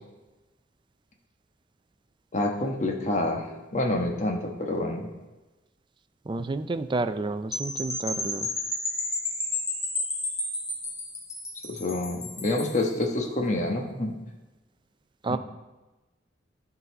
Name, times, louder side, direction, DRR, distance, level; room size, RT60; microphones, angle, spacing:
voice 1, 2.3-3.5 3.7-5.1 11.6-14.1 15.3-15.4, left 1 dB, 40° left, 2 dB, 1.2 m, -27 dB
voice 2, 6.3-8.5 15.2-15.4, right 3 dB, 25° right, 10 dB, 0.4 m, -30 dB
sound 1, 7.5-12.8, left 2 dB, 15° left, 1.3 m, -32 dB
12.0 x 4.1 x 5.4 m, 1.1 s
head